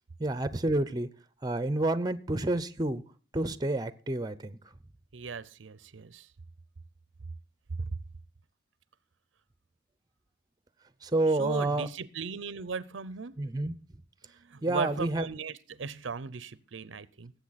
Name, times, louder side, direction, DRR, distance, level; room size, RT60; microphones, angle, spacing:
voice 1, 0.2-1.1 1.4-3.0 3.3-4.6 11.0-11.9 13.4-13.7 14.6-15.2, right 2 dB, 20° right, 0.6 m, -29 dB
voice 2, 5.1-6.3 7.8-8.0 11.3-13.4 14.4-17.3, right 5 dB, 85° right, 0.6 m, -37 dB
18.5 x 8.1 x 4.1 m
head